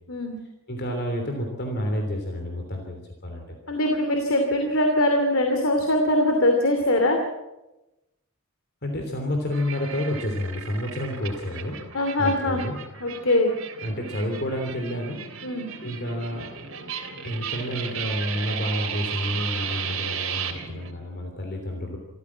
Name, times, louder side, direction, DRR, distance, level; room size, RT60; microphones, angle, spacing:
voice 1, 0.7-3.6 8.8-11.8 12.2-12.8 13.8-15.3 15.8-16.5 17.2-22.0, left 1 dB, 50° left, 3 dB, 3.3 m, -29 dB
voice 2, 3.7-7.2 11.9-12.6 13.0-13.6 15.4-15.7, left 1 dB, 65° left, 4 dB, 2.8 m, -22 dB
sound 1, 9.5-20.9, right 8 dB, 65° right, 3.2 m, -35 dB
26.0 x 15.0 x 7.5 m, 0.97 s
head